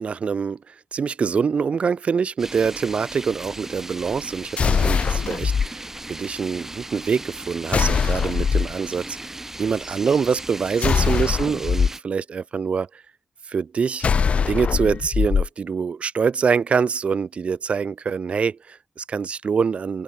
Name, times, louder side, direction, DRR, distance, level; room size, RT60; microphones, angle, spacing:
voice 1, 0.0-13.0 13.4-14.1 14.5-20.0, right 6 dB, 60° right, 0.4 m, -25 dB
sound 1, 2.4-12.0, right 2 dB, 15° right, 3.5 m, -37 dB
sound 2, 4.6-5.7 7.7-8.7 10.8-11.9 14.0-15.5, left 6 dB, 65° left, 0.4 m, -21 dB
wide cardioid pair, 155°, 2 cm